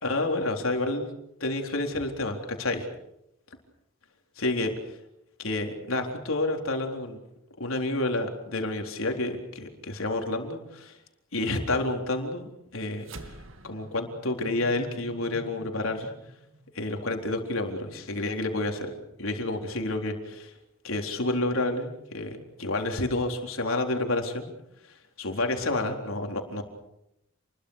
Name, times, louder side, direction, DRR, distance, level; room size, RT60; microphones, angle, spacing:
voice 1, 0.0-1.1 1.4-2.9 4.4-5.0 5.4-7.2 7.6-11.0 11.3-13.4 13.6-16.1 16.7-18.9 19.2-20.5 20.8-21.9 22.1-24.5 24.9-26.6, left 2 dB, 85° left, 3 dB, 4.0 m, -29 dB
sound 1, 13.0-17.6, right 1 dB, 70° right, 2.3 m, -47 dB
29.0 x 22.0 x 6.6 m, 0.83 s
head